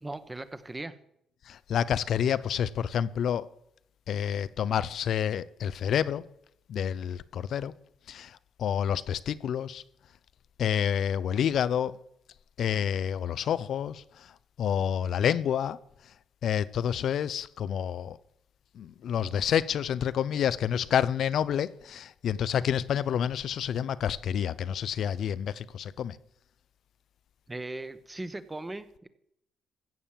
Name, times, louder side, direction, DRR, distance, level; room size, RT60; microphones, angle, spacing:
voice 1, 0.0-0.9 27.5-29.1, right 2 dB, 15° right, 1.0 m, -38 dB
voice 2, 1.5-3.5 4.1-6.2 6.7-7.7 8.1-9.8 10.6-12.0 12.6-14.0 14.6-15.8 16.4-18.2 18.8-26.2, left 9 dB, 70° left, 0.5 m, -28 dB
15.5 x 7.2 x 7.5 m
cardioid pair, 90°, 0 cm